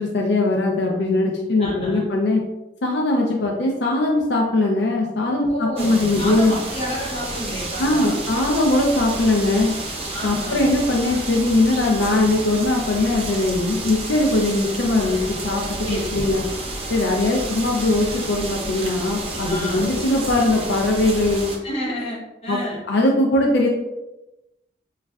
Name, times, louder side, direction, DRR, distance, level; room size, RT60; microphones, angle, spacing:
voice 1, 0.0-2.4 2.8-6.5 7.8-9.7 10.2-16.4 16.9-21.5 22.5-22.6 22.9-23.7, left 2 dB, 80° left, 0 dB, 0.4 m, -20 dB
voice 2, 1.6-2.1 5.5-8.3 10.1-10.7 15.9-16.4 19.5-19.9 21.6-22.8, equal, 35° left, -5 dB, 0.9 m, -30 dB
sound 1, 5.8-21.6, right 2 dB, 35° right, 0.5 m, -31 dB
4.1 x 2.3 x 2.2 m, 0.98 s
head